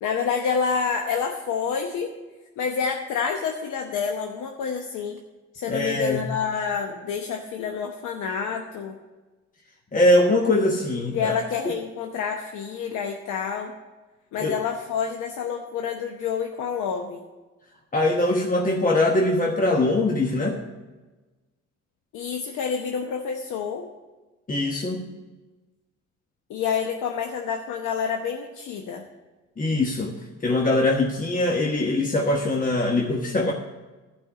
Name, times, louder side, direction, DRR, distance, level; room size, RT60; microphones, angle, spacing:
voice 1, 0.0-2.1 2.6-5.2 5.5-8.9 11.1-13.7 14.3-17.2 22.1-23.8 26.5-29.0, left 6 dB, 85° left, 3 dB, 0.9 m, -28 dB
voice 2, 5.7-6.3 9.9-11.3 14.4-14.5 17.9-20.6 24.5-25.1 29.6-33.5, left 2 dB, 25° left, 0 dB, 1.2 m, -22 dB
12.0 x 5.4 x 7.2 m, 1.2 s
cardioid pair, 90°, 30 cm